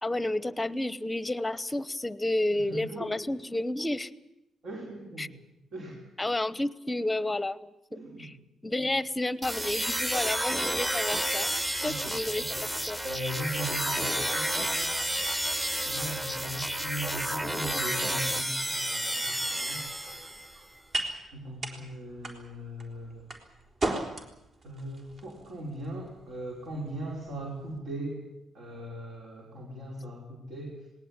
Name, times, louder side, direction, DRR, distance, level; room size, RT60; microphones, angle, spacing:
voice 1, 0.0-4.1 5.2-5.3 6.2-8.4 8.6-13.0, left 1 dB, 15° left, 17 dB, 0.9 m, -31 dB
voice 2, 2.5-3.1 4.6-5.3 5.7-6.0 7.9-8.3 11.8-12.6 13.0-15.0 15.8-19.9 21.3-23.3 24.6-28.2 28.5-30.9, right 1 dB, 65° right, -1 dB, 5.1 m, -39 dB
sound 1, 9.4-20.6, equal, 10° right, 1.3 m, -31 dB
sound 2, 19.4-27.8, right 2 dB, 45° right, 4.0 m, -39 dB
19.5 x 18.5 x 8.9 m, 0.87 s
cardioid pair, 90°, 0 cm